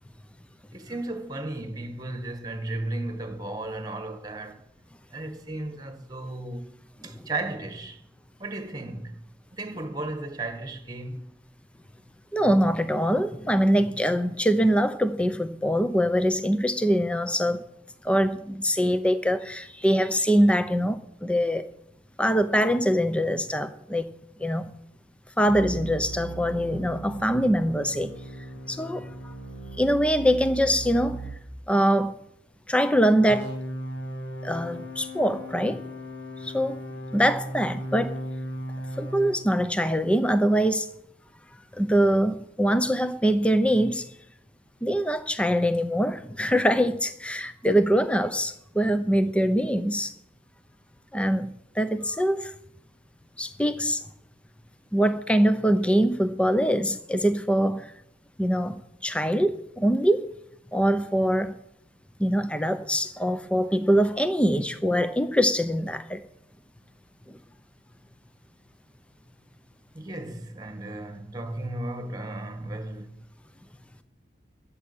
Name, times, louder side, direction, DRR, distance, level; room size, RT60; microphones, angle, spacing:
voice 1, 0.7-4.6 5.1-6.7 7.0-8.0 8.4-9.2 9.5-11.3 69.9-73.2, right 2 dB, 20° right, 1.5 m, -35 dB
voice 2, 12.3-17.6 18.0-21.6 22.2-24.1 24.4-24.7 25.4-28.1 28.7-29.3 29.8-31.2 31.7-32.2 32.7-33.5 34.4-35.8 36.4-36.8 37.1-38.1 39.0-40.9 41.7-44.1 44.8-50.1 51.1-52.5 53.4-54.0 54.9-57.9 58.4-60.2 60.7-61.6 62.2-66.2, equal, 5° left, 0.7 m, -23 dB
sound 1, 25.5-31.4 33.3-39.4, right 1 dB, 85° left, 2.7 m, -37 dB
13.0 x 7.5 x 8.4 m
head